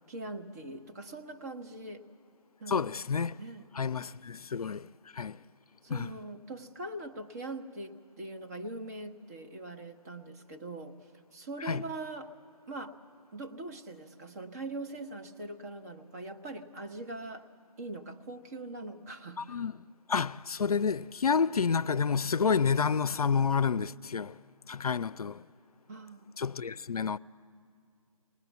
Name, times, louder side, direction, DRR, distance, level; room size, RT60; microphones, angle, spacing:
voice 1, 0.1-2.1 2.6-2.9 3.4-3.7 5.8-11.0 11.3-12.3 12.7-12.9 13.3-17.5 17.8-19.6 25.9-26.2, right 2 dB, 25° right, 1.0 m, -42 dB
voice 2, 2.7-3.4 3.7-5.4 5.9-6.1 11.6-11.8 19.4-19.7 20.1-24.4 24.7-25.4 26.4-27.2, left 6 dB, 75° left, 0.5 m, -29 dB
21.5 x 19.5 x 8.1 m
figure-of-eight pair, 155°, 19 cm